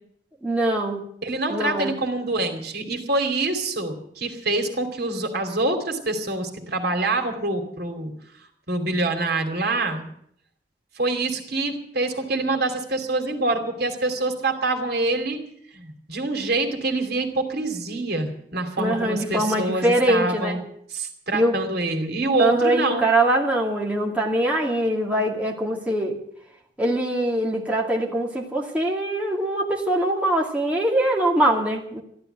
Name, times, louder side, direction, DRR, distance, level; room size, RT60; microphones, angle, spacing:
voice 1, 0.4-1.1 1.5-1.9 18.8-20.6 21.3-21.6 22.4-26.2 26.8-32.0, right 1 dB, 10° right, -2 dB, 2.3 m, -23 dB
voice 2, 1.2-8.1 8.7-10.0 11.0-15.4 15.7-20.6 20.9-23.0, right 2 dB, 60° right, 5 dB, 2.7 m, -25 dB
14.0 x 12.5 x 8.0 m, 0.68 s
head